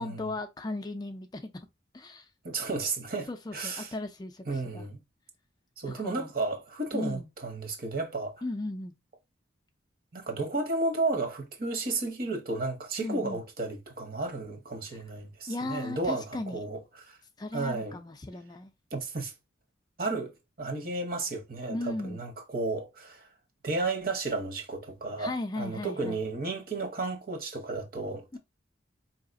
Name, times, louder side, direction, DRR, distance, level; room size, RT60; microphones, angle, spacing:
voice 1, 0.0-1.5 1.9-2.3 3.3-4.8 5.9-6.3 6.9-7.3 8.4-8.9 13.0-13.4 15.5-16.6 17.4-18.7 21.7-22.2 25.2-26.2 28.3-28.4, left 2 dB, 20° left, 0.3 m, -36 dB
voice 2, 2.4-3.9 4.5-5.0 5.8-8.4 10.1-17.2 17.5-18.0 18.9-19.3 20.0-23.3 23.6-28.4, right 3 dB, 50° right, 0.9 m, -33 dB
4.8 x 2.8 x 2.5 m
head